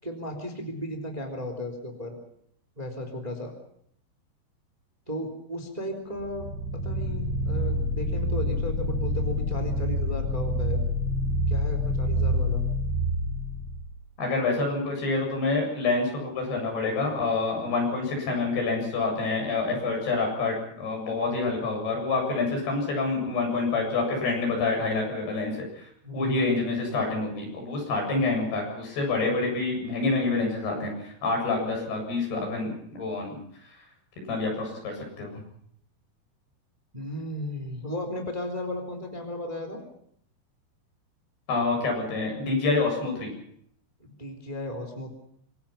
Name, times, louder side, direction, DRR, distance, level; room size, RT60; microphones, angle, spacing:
voice 1, 0.0-2.2 2.8-3.5 5.1-10.8 11.5-12.6 26.0-26.5 36.9-39.8 44.0-45.2, left 1 dB, 10° right, 5 dB, 3.0 m, -35 dB
sound 1, 6.2-13.9, left 1 dB, 50° right, 8.4 m, -27 dB
voice 2, 14.2-25.9 26.1-33.4 34.3-35.4 41.5-43.3, left 3 dB, 60° left, 1 dB, 9.6 m, -27 dB
26.5 x 21.5 x 5.9 m, 0.68 s
omnidirectional pair, 5.3 m